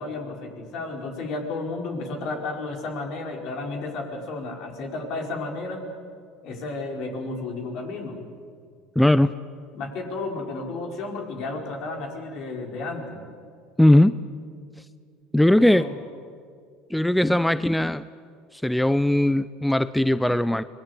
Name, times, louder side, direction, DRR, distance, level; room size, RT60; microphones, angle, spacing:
voice 1, 0.0-5.9 6.4-8.2 9.7-13.2 15.5-16.0, left 3 dB, 60° left, 2 dB, 5.0 m, -32 dB
voice 2, 9.0-9.3 13.8-14.2 15.3-15.9 16.9-18.0 18.5-20.6, left 1 dB, 5° left, 15 dB, 0.6 m, -19 dB
26.0 x 20.0 x 8.3 m, 2.2 s
hypercardioid pair, 85°, 0 cm